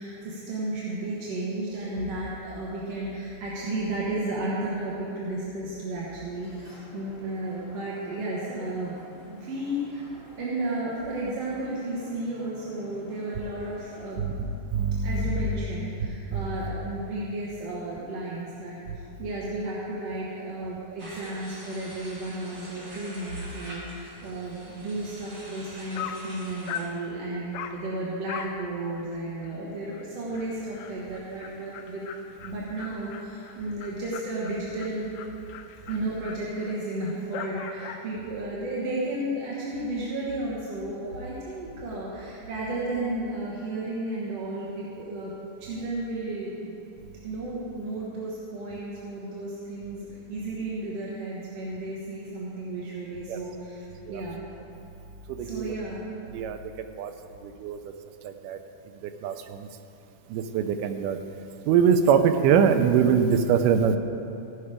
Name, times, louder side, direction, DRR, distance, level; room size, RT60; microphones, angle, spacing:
voice 1, 0.0-8.9 9.3-10.1 10.4-14.6 15.0-18.8 19.2-32.0 32.4-35.1 35.9-45.3 45.6-46.8 47.2-53.5 54.1-54.4 55.4-56.0, right 2 dB, 60° right, -6 dB, 2.0 m, -33 dB
sound 1, 6.3-14.2, left 2 dB, 50° left, 0.9 m, -51 dB
voice 2, 14.7-15.5 53.3-53.4 54.1-54.2 55.5-55.8 56.3-56.6 57.0-57.1 57.6-57.8 58.4-58.6 59.2-59.3 60.3-61.2 61.7-64.0, right 7 dB, 85° right, 8 dB, 2.1 m, -22 dB
sound 2, 21.0-26.9, right 1 dB, 40° right, 2.9 m, -45 dB
Dog, 25.6-25.7 25.9-26.3 26.7-27.0 27.5-27.8 28.3-28.6 28.9-29.0 29.5-29.6 29.9-30.0 30.3-38.1, left 8 dB, 85° left, 1.5 m, -41 dB
16.0 x 5.7 x 4.9 m, 2.7 s
omnidirectional pair, 3.7 m